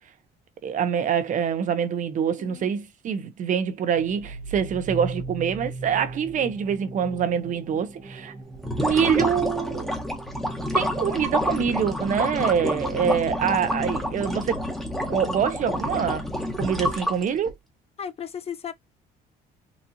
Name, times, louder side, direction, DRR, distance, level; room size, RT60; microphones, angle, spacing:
voice 1, 0.6-8.3 8.8-9.9 10.7-14.6 15.1-16.2 16.6-17.5, right 8 dB, 50° right, 0.7 m, -25 dB
voice 2, 2.3-2.7 18.0-18.7, left 8 dB, 35° left, 0.5 m, -36 dB
sound 1, 3.9-13.3, right 3 dB, 25° right, 0.8 m, -39 dB
sound 2, 8.5-17.5, left 1 dB, ahead, 1.0 m, -28 dB
4.0 x 2.4 x 2.6 m
cardioid pair, 110°, 17 cm